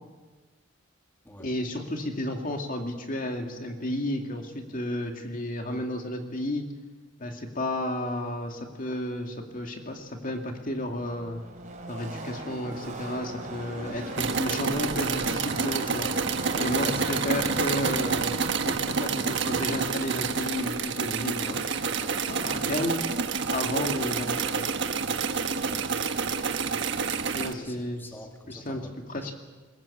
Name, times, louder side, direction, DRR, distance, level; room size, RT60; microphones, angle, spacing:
voice 1, 1.4-6.7 7.2-11.4 11.9-16.1 16.6-18.4 18.6-21.7 22.3-22.9 23.5-24.7 27.3-28.1 28.5-28.8 29.1-29.2, left 1 dB, 40° left, 4 dB, 2.4 m, -32 dB
Car passing by / Race car auto racing, 10.7-20.8, right 2 dB, 40° right, 4.5 m, -39 dB
sound 1, 14.2-27.5, right 5 dB, 60° right, 1.4 m, -28 dB
voice 2, 16.7-17.8 25.6-26.4 27.2-29.3, left 1 dB, 10° left, 3 dB, 2.4 m, -46 dB
22.0 x 20.0 x 8.5 m, 1.3 s
head